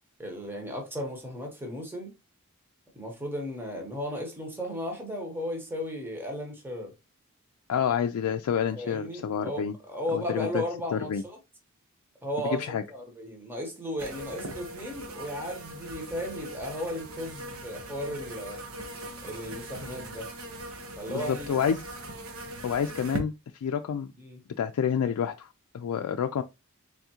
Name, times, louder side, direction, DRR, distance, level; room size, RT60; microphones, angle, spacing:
voice 1, 0.2-2.1 2.9-6.9 8.7-9.6 9.9-11.4 12.2-18.6 19.2-20.3 21.0-21.6 24.2-24.4, equal, 10° right, 0.9 m, -35 dB
voice 2, 7.7-9.7 10.1-10.6 10.9-11.2 12.7-12.8 21.1-21.8 22.6-23.3 23.6-24.1 24.6-25.5 25.7-26.4, left 7 dB, 90° left, 0.3 m, -28 dB
sound 1, 14.0-23.2, right 1 dB, 70° right, 0.8 m, -40 dB
3.6 x 3.5 x 2.8 m
head